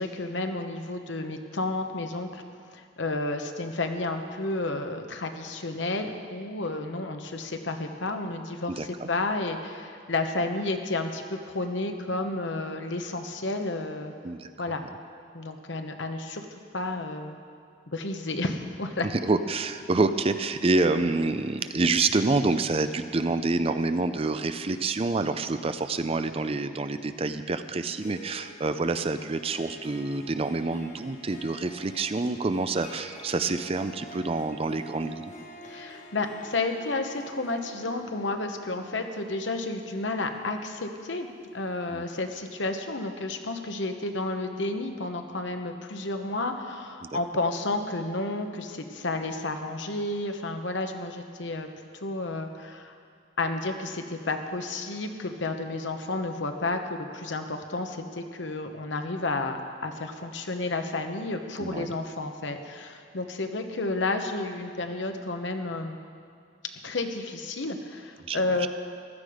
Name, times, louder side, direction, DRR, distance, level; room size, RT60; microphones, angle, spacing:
voice 1, 0.0-2.4 2.7-14.1 14.6-14.8 15.3-16.4 16.7-17.4 17.9-19.1 35.6-41.3 41.5-51.7 52.0-52.9 53.4-66.0 66.8-68.7, left 2 dB, 70° left, 5 dB, 1.1 m, -31 dB
voice 2, 8.7-9.1 14.2-14.5 19.2-35.2 41.9-42.0 47.0-47.1 61.6-61.9 68.2-68.7, right 3 dB, 30° right, 10 dB, 0.5 m, -27 dB
Harp, 27.8-41.8, equal, 35° left, 1.6 m, -48 dB
16.0 x 13.0 x 5.0 m, 2.2 s
head